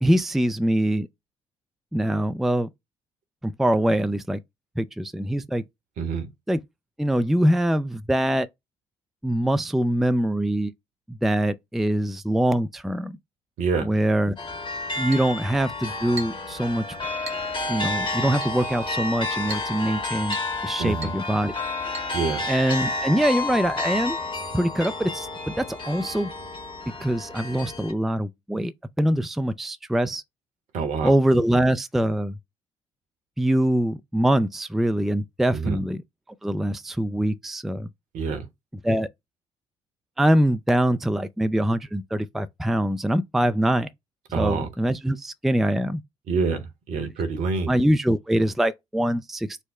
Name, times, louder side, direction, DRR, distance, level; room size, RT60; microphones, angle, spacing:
voice 1, 0.0-1.1 1.9-2.7 3.4-4.4 4.8-5.6 6.5-6.6 7.0-8.5 9.2-10.7 11.1-13.2 13.8-14.4 15.0-16.8 17.7-20.4 20.6-21.5 22.5-24.2 24.5-26.3 27.0-28.7 29.0-30.2 31.0-32.4 33.4-36.0 36.4-37.9 38.8-39.1 40.2-43.9 44.4-46.0 47.6-49.6, right 1 dB, ahead, 0.4 m, -23 dB
voice 2, 6.0-6.3 13.6-13.9 20.8-21.1 22.1-22.4 30.7-31.1 35.5-35.8 38.1-38.5 44.3-44.7 46.3-47.7, right 5 dB, 60° right, 1.0 m, -26 dB
sound 1, 14.4-27.9, left 2 dB, 35° left, 1.5 m, -31 dB
Chink clink, 15.1-15.3 16.2-16.5 17.3-17.5 18.4-18.6 19.5-19.7 20.3-20.6 21.0-21.2 21.9-22.1 22.7-22.9 23.2-23.3 23.8-23.9 24.8-24.9, right 2 dB, 85° right, 0.9 m, -38 dB
4.5 x 2.1 x 4.2 m
figure-of-eight pair, 45°, 14 cm